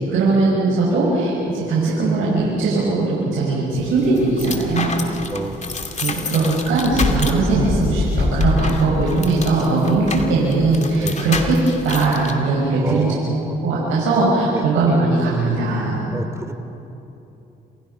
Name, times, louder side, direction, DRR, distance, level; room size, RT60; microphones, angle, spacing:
voice 1, 0.1-4.9 6.0-11.5 11.8-13.1 13.6-16.1, right 3 dB, 85° right, -6 dB, 6.5 m, -19 dB
sound 1, 3.8-12.3, left 3 dB, 35° left, 2.6 m, -26 dB
voice 2, 5.3-5.6 9.8-10.1 11.0-11.2 12.8-13.6 14.5-14.6 16.1-16.5, right 2 dB, 15° right, 7 dB, 3.0 m, -31 dB
29.0 x 28.0 x 5.8 m, 3.0 s
cardioid pair, 90°, 20 cm